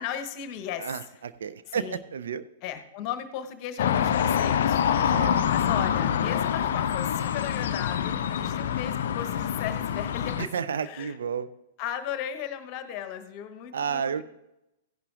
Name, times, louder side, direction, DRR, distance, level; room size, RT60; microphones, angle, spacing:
voice 1, 0.0-1.0 1.7-2.0 2.6-5.1 5.5-10.4 10.8-11.2 11.8-14.2, left 9 dB, 35° left, 9 dB, 0.9 m, -36 dB
voice 2, 0.8-2.4 5.1-5.4 10.4-11.5 13.7-14.2, right 7 dB, 60° right, 13 dB, 0.4 m, -31 dB
sound 1, 3.8-10.5, left 9 dB, 55° left, 0.4 m, -26 dB
15.5 x 11.0 x 2.5 m, 0.90 s
figure-of-eight pair, 105°, 0 cm